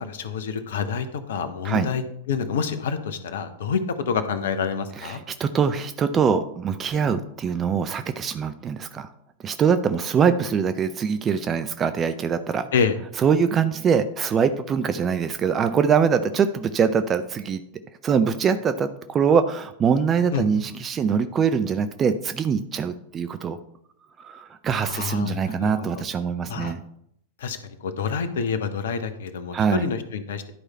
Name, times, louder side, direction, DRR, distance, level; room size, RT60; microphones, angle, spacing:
voice 1, 0.0-5.2 12.7-13.0 20.3-20.5 24.8-26.0 26.5-26.7 27.4-30.4, left 6 dB, 60° left, 10 dB, 0.9 m, -28 dB
voice 2, 5.0-9.1 9.4-12.7 13.2-17.6 18.0-23.6 24.2-26.8 29.5-29.8, right 6 dB, 25° right, 10 dB, 0.5 m, -23 dB
11.0 x 4.8 x 4.2 m, 0.72 s
figure-of-eight pair, 90°, 0 cm